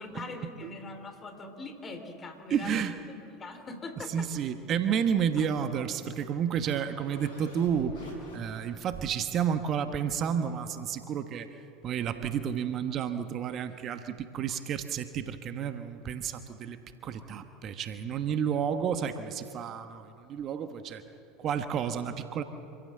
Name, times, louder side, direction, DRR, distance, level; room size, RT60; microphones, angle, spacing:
voice 1, 0.0-2.8 3.4-4.3 5.4-5.5, left 3 dB, 30° left, 6 dB, 3.3 m, -42 dB
voice 2, 2.5-3.0 4.1-11.5 11.8-16.8 17.0-21.0 21.4-22.4, right 8 dB, 45° right, 9 dB, 1.3 m, -31 dB
sound 1, 5.8-9.0, left 1 dB, 70° left, 5.7 m, -49 dB
26.5 x 15.5 x 7.7 m, 2.6 s
hypercardioid pair, 80°, 0 cm